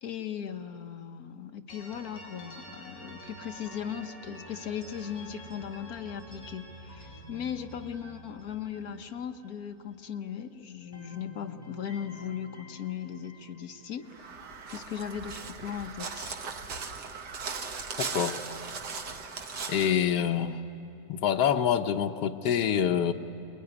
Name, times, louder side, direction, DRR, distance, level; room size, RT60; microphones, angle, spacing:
voice 1, 0.0-14.4 14.7-16.4, left 8 dB, 65° left, 7 dB, 1.4 m, -38 dB
sound 1, 1.7-10.4 10.7-14.8, equal, 20° left, 5.8 m, -49 dB
Crow, 14.1-19.9, right 5 dB, 90° right, 2.0 m, -38 dB
voice 2, 18.0-18.4 19.7-20.6 21.1-23.1, left 8 dB, 85° left, 4 dB, 1.4 m, -26 dB
26.5 x 22.0 x 9.8 m, 2.7 s
omnidirectional pair, 1.7 m